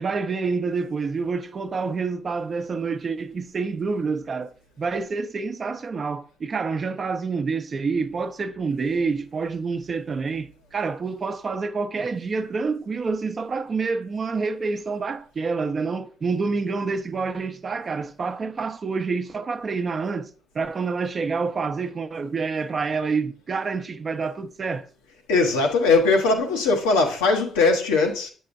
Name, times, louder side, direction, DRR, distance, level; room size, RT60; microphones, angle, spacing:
voice 1, 0.0-24.9, right 4 dB, 45° right, 0.6 m, -27 dB
voice 2, 25.3-28.3, left 3 dB, 90° left, 0.8 m, -20 dB
7.5 x 5.5 x 2.5 m
hypercardioid pair, 50°, 0 cm